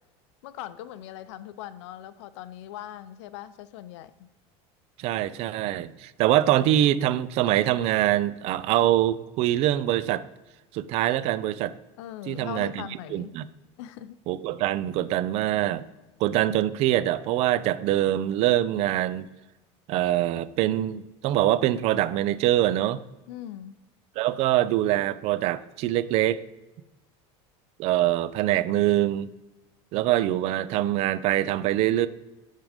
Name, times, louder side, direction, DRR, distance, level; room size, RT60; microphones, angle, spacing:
voice 1, 0.4-4.3 12.0-13.4 13.8-14.2 23.3-23.8, left 12 dB, 80° left, 0.5 m, -40 dB
voice 2, 5.0-10.3 10.7-11.7 12.3-13.4 14.3-15.8 16.2-19.3 19.9-23.0 24.2-26.4 27.8-29.3 29.9-32.1, right 13 dB, 45° right, 0.4 m, -24 dB
10.5 x 3.7 x 5.1 m
supercardioid pair, 150°, 15 cm